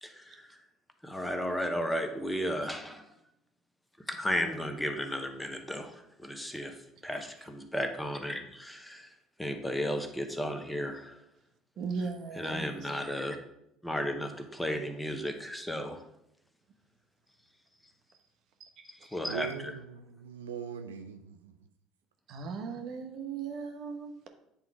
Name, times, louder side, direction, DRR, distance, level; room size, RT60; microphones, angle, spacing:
voice 1, 0.0-0.6 1.0-3.1 4.1-6.8 7.0-9.1 9.4-11.2 12.4-13.4 13.8-16.0 18.8-19.7, equal, 5° left, 5 dB, 1.1 m, -34 dB
voice 2, 11.8-12.7 18.6-18.7 22.3-24.3, right 5 dB, 60° right, 5 dB, 1.1 m, -37 dB
voice 3, 19.2-21.5, right 7 dB, 90° right, 7 dB, 0.4 m, -41 dB
8.9 x 3.7 x 4.7 m, 0.80 s
hypercardioid pair, 65°, 0 cm